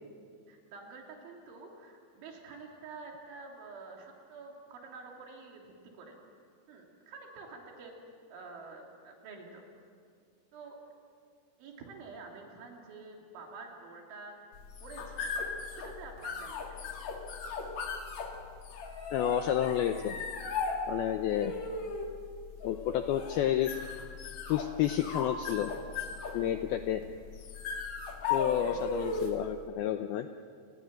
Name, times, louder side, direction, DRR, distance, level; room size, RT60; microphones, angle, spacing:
voice 1, 0.5-6.2 6.7-7.9 8.3-9.6 10.5-10.8 11.6-14.4 14.8-15.4 15.7-17.1 26.3-26.8 28.6-28.8, right 4 dB, 80° right, 1 dB, 5.7 m, -48 dB
sound 1, 14.6-29.5, left 4 dB, 50° left, 2.7 m, -37 dB
voice 2, 19.1-20.2 20.9-21.5 22.6-23.7 24.5-25.7 26.3-27.0 28.3-30.3, left 11 dB, 85° left, 7 dB, 2.2 m, -30 dB
29.0 x 20.5 x 7.8 m, 2.1 s
omnidirectional pair, 5.4 m